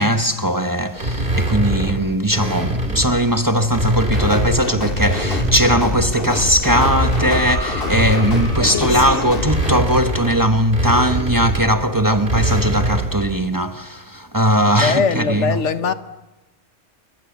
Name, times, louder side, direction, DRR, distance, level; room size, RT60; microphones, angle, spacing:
voice 1, 0.0-15.9, equal, 20° right, 1.1 m, -19 dB
sound 1, 1.0-3.2 3.6-6.0 6.5-13.2, right 1 dB, 45° right, 3.5 m, -23 dB
sound 2, 4.1-9.7, left 2 dB, 50° left, 2.1 m, -25 dB
sound 3, 7.1-10.1 11.4-11.5, equal, 15° left, 5.8 m, -34 dB
voice 2, 8.6-9.3 14.7-15.9, left 6 dB, 75° left, 1.4 m, -22 dB
28.5 x 23.5 x 7.2 m
omnidirectional pair, 1.2 m